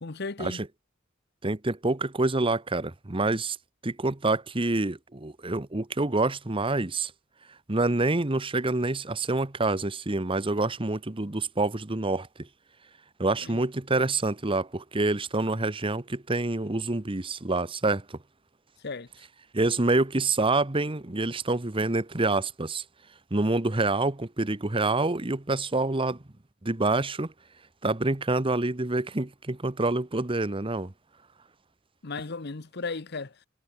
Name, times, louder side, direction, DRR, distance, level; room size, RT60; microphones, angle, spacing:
voice 1, 0.0-0.6 13.4-13.6 18.8-19.1 32.0-33.4, left 3 dB, 55° left, 1.0 m, -35 dB
voice 2, 1.4-3.6 3.8-7.1 7.7-12.5 13.2-18.2 19.5-22.8 23.3-26.2 26.6-27.3 27.8-30.9, right 2 dB, 25° right, 1.1 m, -27 dB
head